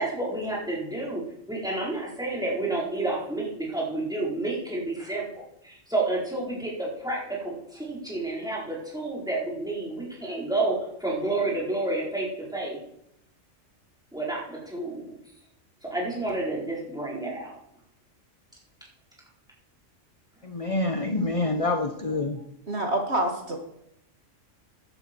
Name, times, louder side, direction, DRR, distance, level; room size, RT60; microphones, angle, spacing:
voice 1, 0.0-12.8 14.1-15.1 15.8-17.5, right 2 dB, 5° right, -6 dB, 4.3 m, -30 dB
voice 2, 20.4-22.4, left 2 dB, 30° left, 6 dB, 0.8 m, -27 dB
voice 3, 22.7-23.6, right 1 dB, 55° right, 2 dB, 2.0 m, -26 dB
15.0 x 11.5 x 4.5 m, 0.77 s
omnidirectional pair, 1.3 m